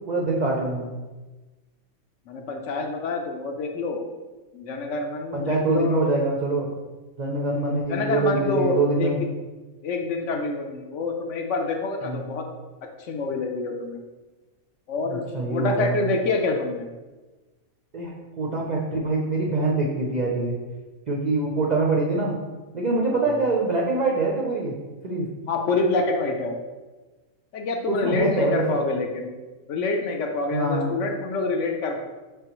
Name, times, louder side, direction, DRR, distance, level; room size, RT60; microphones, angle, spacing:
voice 1, 0.1-0.9 5.3-6.7 7.2-9.2 12.0-12.2 15.1-16.0 17.9-20.5 21.1-22.3 22.7-24.7 25.0-25.3 27.9-28.8 30.5-31.0, right 3 dB, 60° right, -2 dB, 0.4 m, -24 dB
voice 2, 2.3-4.0 4.5-6.0 7.9-9.1 9.8-12.4 13.0-14.0 14.9-15.2 15.5-16.9 23.1-23.4 25.5-26.6 27.5-29.3 29.7-32.0, left 3 dB, 65° left, 3 dB, 0.8 m, -27 dB
5.3 x 3.4 x 2.9 m, 1.2 s
omnidirectional pair, 1.5 m